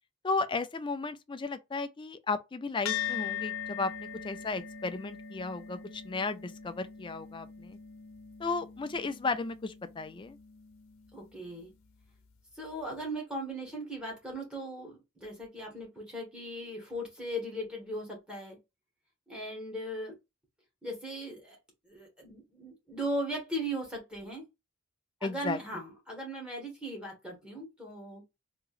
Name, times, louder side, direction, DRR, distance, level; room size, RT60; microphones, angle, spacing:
voice 1, 0.2-7.8 8.4-10.4 25.2-25.6, left 3 dB, 20° left, 0.4 m, -34 dB
sound 1, 2.9-11.5, left 8 dB, 65° left, 0.8 m, -41 dB
voice 2, 11.1-11.7 12.5-18.6 19.3-20.1 20.8-21.6 21.8-24.4 25.2-28.2, right 1 dB, 5° right, 1.5 m, -38 dB
3.7 x 2.9 x 2.4 m
head